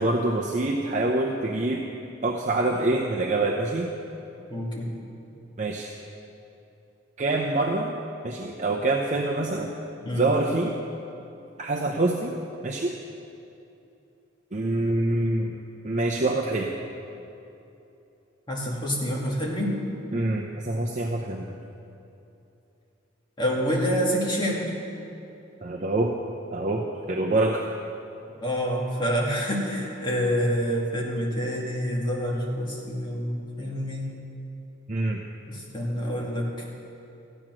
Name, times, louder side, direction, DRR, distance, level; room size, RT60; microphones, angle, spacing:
voice 1, 0.0-1.8 2.2-3.9 5.6-5.9 7.2-7.9 8.2-9.7 10.2-10.8 11.6-12.4 12.6-12.9 14.5-15.5 15.8-16.7 20.1-21.6 25.6-26.1 26.5-27.7 34.9-35.2, right 2 dB, 40° right, -1 dB, 0.7 m, -25 dB
voice 2, 4.5-4.9 10.0-10.3 18.5-19.8 23.4-24.7 28.4-34.1 35.5-36.6, equal, 25° left, -3 dB, 2.2 m, -27 dB
14.5 x 8.9 x 6.1 m, 2.8 s
head